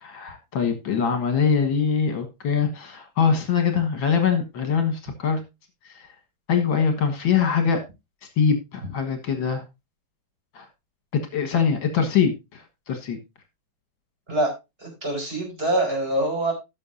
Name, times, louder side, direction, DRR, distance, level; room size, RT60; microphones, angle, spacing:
voice 1, 0.0-5.4 6.5-7.8 8.4-9.6 10.6-10.7 11.1-13.2, left 6 dB, 70° left, 7 dB, 2.2 m, -23 dB
voice 2, 14.8-16.5, right 1 dB, 25° right, 1 dB, 4.9 m, -24 dB
17.0 x 6.3 x 2.6 m, 0.23 s
omnidirectional pair, 2.2 m